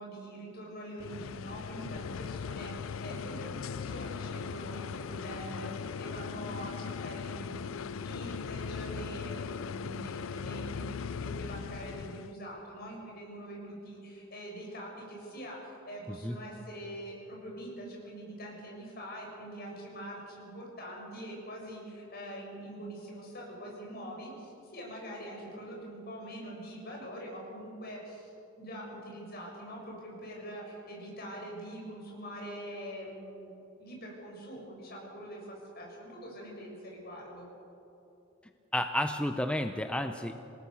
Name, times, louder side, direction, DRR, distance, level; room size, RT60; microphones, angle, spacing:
voice 1, 0.0-28.3 28.6-33.5 33.8-37.5, right 1 dB, 50° left, -2 dB, 7.3 m, -44 dB
sound 1, 1.0-12.3, left 6 dB, 75° left, 0.4 m, -39 dB
voice 2, 38.7-40.3, left 1 dB, 5° left, 7 dB, 0.6 m, -31 dB
27.0 x 18.5 x 7.1 m, 2.9 s
head